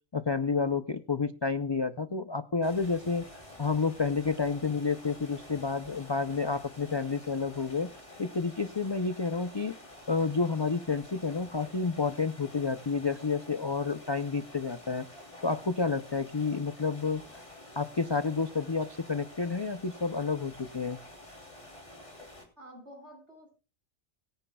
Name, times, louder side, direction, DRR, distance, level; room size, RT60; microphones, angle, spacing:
voice 1, 0.1-3.3 3.6-7.9 8.2-9.7 10.1-15.0 15.4-17.2 17.8-21.0, left 4 dB, 40° left, 11 dB, 0.3 m, -30 dB
sound 1, 2.6-22.4, left 1 dB, 25° left, 3.3 m, -50 dB
voice 2, 22.6-23.6, equal, 60° right, 1 dB, 6.8 m, -51 dB
23.5 x 10.0 x 2.3 m, 0.31 s
omnidirectional pair, 1.3 m